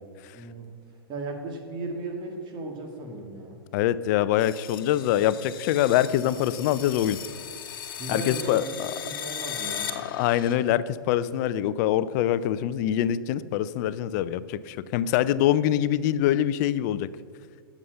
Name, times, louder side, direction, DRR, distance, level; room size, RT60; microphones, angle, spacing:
voice 1, 0.3-0.7 1.1-3.6 8.0-8.7 9.0-10.0, right 2 dB, 35° right, 3 dB, 2.1 m, -36 dB
voice 2, 3.7-7.2 8.1-8.9 10.0-17.1, left 12 dB, 50° left, 16 dB, 0.5 m, -24 dB
sound 1, 4.4-10.5, left 8 dB, 65° left, 1.2 m, -37 dB
11.0 x 7.3 x 6.6 m, 2.2 s
figure-of-eight pair, 100°, 12 cm